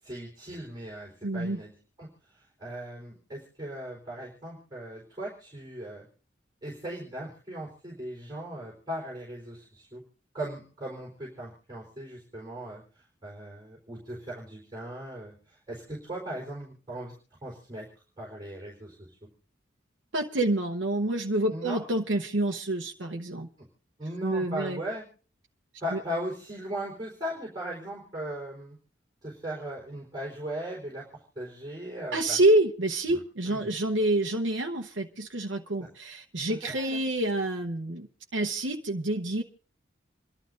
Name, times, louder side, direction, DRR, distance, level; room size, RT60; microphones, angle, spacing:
voice 1, 0.0-1.7 2.0-6.1 6.6-10.0 10.3-17.1 17.4-17.9 18.2-19.2 21.5-21.8 24.0-25.0 25.8-28.7 29.2-31.0 31.4-32.4 33.1-33.2 33.4-33.7 35.8-35.9 36.4-37.0, right 1 dB, 20° right, -4 dB, 4.0 m, -38 dB
voice 2, 1.2-1.6 20.1-23.5 24.2-24.8 25.9-26.0 32.1-39.4, right 1 dB, 80° right, 2 dB, 1.0 m, -27 dB
28.5 x 11.5 x 2.6 m, 0.41 s
head